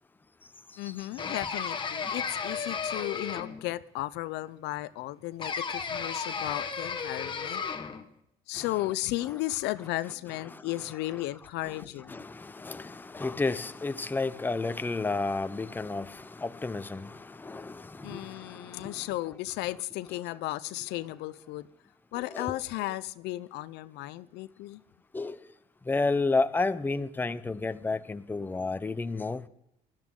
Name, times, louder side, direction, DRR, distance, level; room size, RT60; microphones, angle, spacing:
voice 1, 0.8-7.6 8.5-12.2 18.0-21.7 22.1-24.8, left 17 dB, 90° left, 0.6 m, -35 dB
sound 1, 1.2-3.7 5.4-8.0, left 5 dB, 30° left, 1.2 m, -34 dB
voice 2, 12.1-19.0 22.2-22.6 25.1-25.4 25.9-29.4, left 3 dB, 10° left, 0.6 m, -31 dB
20.0 x 12.0 x 3.7 m
cardioid pair, 110°, 17 cm